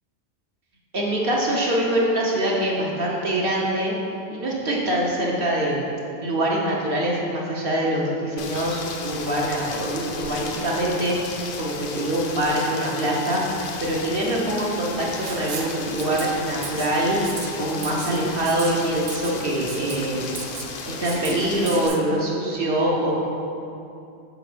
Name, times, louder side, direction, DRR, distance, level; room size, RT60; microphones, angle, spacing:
voice 1, 0.9-3.9 4.3-5.8 6.2-20.3 20.9-23.2, right 1 dB, 60° right, -3 dB, 1.0 m, -24 dB
Rain, 8.4-21.9, left 4 dB, 60° left, 0.7 m, -35 dB
Writing, 15.2-15.7 16.0-16.3 16.6-16.9 17.2-17.5 17.8-18.1 18.5-18.7 19.1-19.3 19.7-20.0 20.4-20.7 21.0-21.3 21.7-22.0, right 7 dB, 85° right, 0.9 m, -34 dB
6.4 x 4.2 x 4.9 m, 2.7 s
omnidirectional pair, 1.1 m